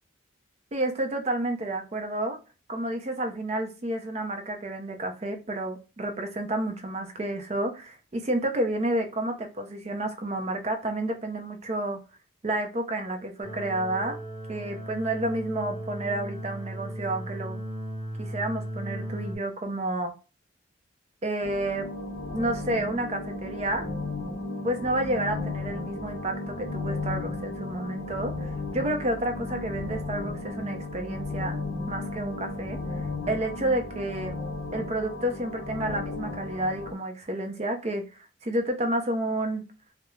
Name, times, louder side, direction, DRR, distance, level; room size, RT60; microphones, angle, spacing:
voice 1, 0.7-2.4 2.7-12.0 12.4-14.2 14.5-17.6 18.2-20.1 21.2-21.9 22.3-23.9 24.6-31.6 31.9-34.3 34.7-39.6, right 1 dB, 35° right, 5 dB, 0.5 m, -30 dB
sound 1, 13.4-19.4, right 1 dB, 20° left, 1.1 m, -36 dB
sound 2, 21.4-36.9, left 3 dB, 45° left, 0.7 m, -34 dB
3.1 x 2.0 x 2.2 m, 0.32 s
head